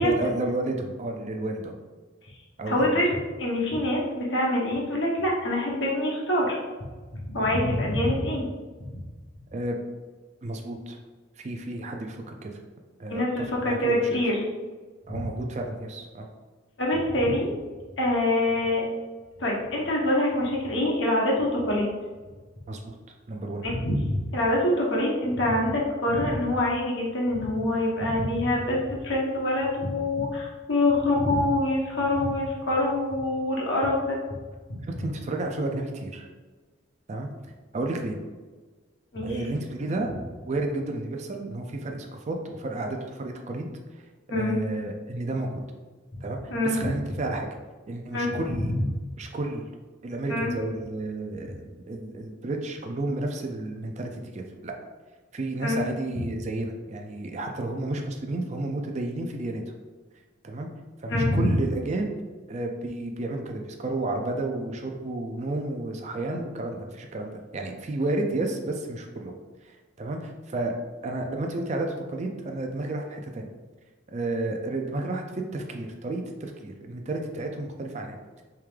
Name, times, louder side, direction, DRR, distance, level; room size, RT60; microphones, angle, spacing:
voice 1, 0.0-1.7 2.6-2.9 9.5-9.8 10.4-11.0 11.4-12.5 13.0-14.2 15.1-16.3 22.7-23.0 23.3-23.6 34.8-36.3 37.1-38.2 39.2-40.1 40.4-43.7 44.3-45.6 46.2-47.5 47.9-48.7 49.2-49.6 50.0-54.7 55.3-59.6 60.4-60.7 61.0-62.1 62.5-69.3 69.6-70.7 71.0-73.5 74.1-78.4, right 2 dB, 35° right, 3 dB, 0.4 m, -32 dB
voice 2, 2.7-3.1 3.4-6.6 7.3-8.5 13.1-14.4 15.1-15.2 16.8-17.5 18.0-18.8 19.4-21.9 23.6-34.2 34.7-34.8 39.1-39.4 44.3-44.5 46.5-46.8 48.1-48.4 48.8-48.9 50.3-50.5 55.6-55.8 61.1-61.5, left 1 dB, 65° left, -3 dB, 1.0 m, -25 dB
3.5 x 3.3 x 3.2 m, 1.3 s
head